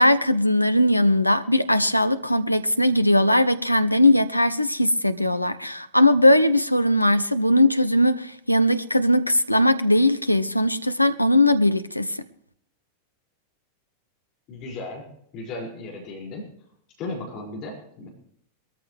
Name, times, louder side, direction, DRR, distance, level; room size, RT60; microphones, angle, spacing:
voice 1, 0.0-12.2, left 1 dB, 85° left, 12 dB, 0.8 m, -19 dB
voice 2, 14.5-16.5 17.0-18.1, left 2 dB, 40° left, -1 dB, 5.3 m, -35 dB
22.0 x 14.0 x 3.2 m, 0.68 s
figure-of-eight pair, 90°, 0 cm